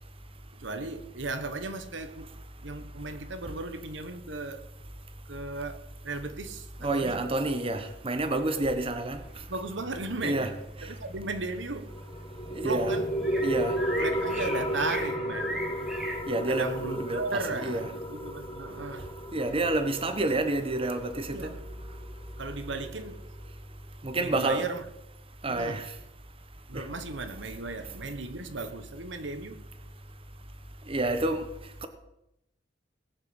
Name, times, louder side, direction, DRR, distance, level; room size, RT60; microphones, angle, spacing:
voice 1, 0.5-2.3 2.6-4.7 5.3-7.2 9.5-10.5 10.8-11.9 12.6-13.4 14.0-16.0 16.5-19.3 21.3-21.8 22.4-23.2 24.2-24.8 25.5-25.8 26.7-29.6, right 3 dB, 80° right, 1.3 m, -36 dB
voice 2, 6.8-9.5 10.2-10.5 10.8-11.0 12.5-13.0 13.4-13.8 16.3-16.7 17.0-17.2 17.6-17.9 19.0-21.5 21.9-22.4 24.0-24.7 25.4-26.0 26.7-26.9 30.8-31.9, right 2 dB, 30° right, 1.2 m, -29 dB
sound 1, 9.2-16.2, left 1 dB, ahead, 2.0 m, -41 dB
sound 2, 11.9-22.9, equal, 30° left, 2.9 m, -33 dB
19.0 x 6.6 x 8.0 m
head